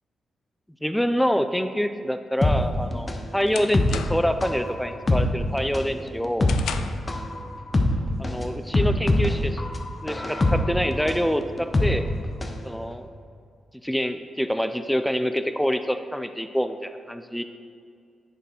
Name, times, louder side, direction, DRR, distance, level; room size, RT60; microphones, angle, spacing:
voice 1, 0.8-6.6 8.2-9.6 10.0-12.1 12.6-13.1 13.8-17.4, equal, 5° left, 9 dB, 0.3 m, -26 dB
sound 1, 2.4-12.6 12.9-13.0, left 2 dB, 30° left, 0.7 m, -24 dB
sound 2, 2.6-4.4 4.8-5.2 5.6-7.1, left 7 dB, 85° left, 0.3 m, -36 dB
10.5 x 4.2 x 4.3 m, 2.2 s
cardioid pair, 95°, 0 cm